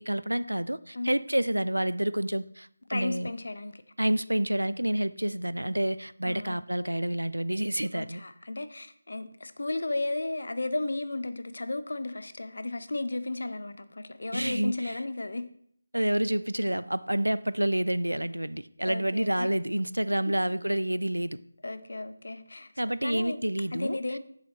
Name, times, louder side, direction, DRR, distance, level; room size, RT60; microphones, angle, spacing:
voice 1, 0.0-3.3 4.0-8.2 14.3-14.9 15.9-21.4 22.8-24.0, right 1 dB, 80° right, 0.4 m, -28 dB
voice 2, 2.9-3.8 6.2-6.6 7.9-15.5 18.9-19.5 20.3-20.4 21.6-22.7 23.0-23.4 23.7-24.2, left 2 dB, 60° left, 0.7 m, -34 dB
7.7 x 7.1 x 4.2 m
figure-of-eight pair, 160°, 0 cm